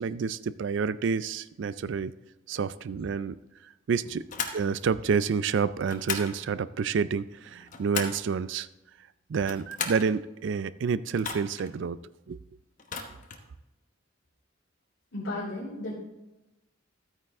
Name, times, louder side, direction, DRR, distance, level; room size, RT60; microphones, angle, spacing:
voice 1, 0.0-2.1 2.5-3.4 3.9-4.2 4.5-8.7 9.3-12.0 12.3-12.4, right 5 dB, 65° right, 16 dB, 0.4 m, -29 dB
sound 1, 4.3-4.6 5.8-6.3 7.4-8.3 9.3-10.1 11.2-11.7 12.8-13.5, left 5 dB, 40° left, 1.0 m, -35 dB
voice 2, 15.1-16.0, left 2 dB, 60° left, -8 dB, 2.9 m, -34 dB
12.5 x 8.9 x 3.5 m, 0.99 s
head